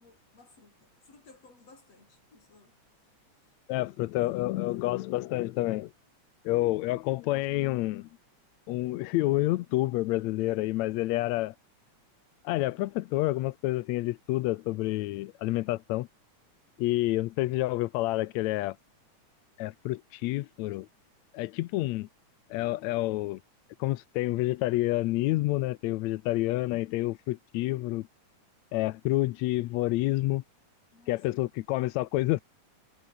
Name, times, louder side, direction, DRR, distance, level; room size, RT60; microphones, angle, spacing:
voice 1, 0.0-2.8 3.3-4.4 30.9-31.4, left 3 dB, 55° left, 8.3 m, -59 dB
voice 2, 3.7-5.9 6.5-8.1 8.7-11.6 12.4-16.1 16.8-18.8 19.6-20.9 21.3-22.1 22.5-23.4 23.8-28.1 28.7-30.4 31.1-32.4, left 18 dB, 75° left, 1.8 m, -28 dB
omnidirectional pair, 3.4 m